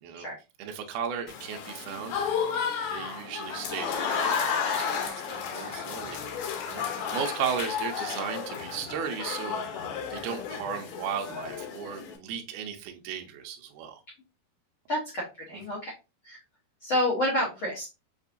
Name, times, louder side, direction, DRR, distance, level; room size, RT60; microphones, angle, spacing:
voice 1, 0.6-2.5 2.9-6.2 6.7-6.8 7.1-9.8 10.1-14.0, right 7 dB, 75° right, 3 dB, 2.0 m, -35 dB
Applause / Crowd, 1.3-12.2, left 6 dB, 75° left, 2.2 m, -32 dB
voice 2, 14.9-15.9 16.2-16.4 16.8-17.9, left 1 dB, 90° left, -5 dB, 1.1 m, -29 dB
6.6 x 2.6 x 2.5 m, 0.27 s
omnidirectional pair, 4.3 m